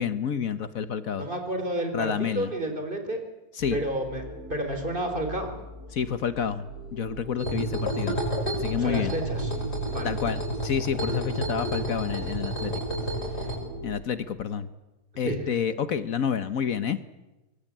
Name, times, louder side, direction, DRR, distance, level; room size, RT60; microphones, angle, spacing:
voice 1, 0.0-1.3 1.9-2.5 3.6-3.8 5.9-6.7 6.9-8.2 8.5-9.1 10.0-12.7 13.8-14.7 15.2-17.0, left 7 dB, 65° left, 12 dB, 1.5 m, -29 dB
voice 2, 1.1-3.2 3.7-4.2 4.5-5.5 8.8-9.5 9.9-10.1 15.2-15.4, right 1 dB, 35° right, 5 dB, 4.0 m, -30 dB
sound 1, 3.6-13.9, right 2 dB, 50° right, 8.3 m, -39 dB
sound 2, 7.4-13.6, equal, 45° left, 7.3 m, -31 dB
24.0 x 22.0 x 8.7 m, 1.1 s
omnidirectional pair, 1.6 m